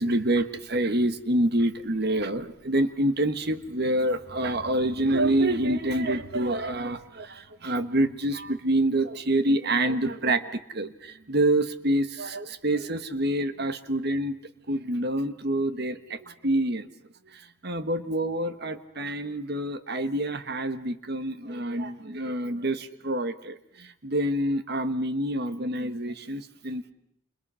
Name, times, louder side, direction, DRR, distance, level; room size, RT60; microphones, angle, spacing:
voice 1, 0.0-14.4 14.7-16.9 17.6-26.9, right 1 dB, 50° right, 11 dB, 1.4 m, -27 dB
29.5 x 28.0 x 5.7 m, 0.77 s
head